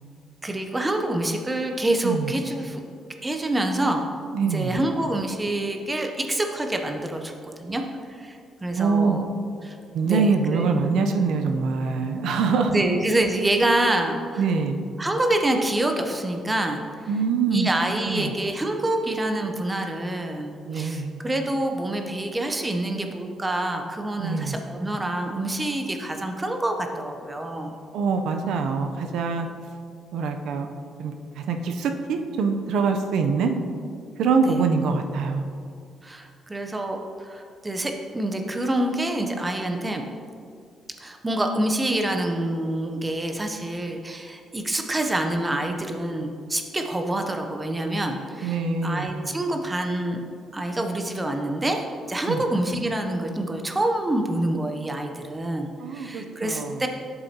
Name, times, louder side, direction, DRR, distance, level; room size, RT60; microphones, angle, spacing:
voice 1, 0.4-2.8 3.2-4.1 4.5-7.8 8.1-9.2 9.6-9.8 10.1-10.7 12.7-14.4 15.0-17.1 17.5-27.7 34.5-34.6 36.0-40.1 41.0-50.2 50.5-51.8 52.1-56.9, right 1 dB, 20° right, 4 dB, 0.7 m, -26 dB
voice 2, 4.3-4.8 8.8-9.2 9.9-12.8 14.4-14.8 17.1-17.7 18.1-18.3 20.6-21.2 24.2-24.6 27.9-29.5 30.1-30.7 31.0-33.5 34.2-35.5 48.4-49.3 52.3-52.4 55.8-56.8, right 5 dB, 80° right, 5 dB, 0.6 m, -24 dB
8.8 x 6.9 x 2.9 m, 2.3 s
cardioid pair, 90°, 0 cm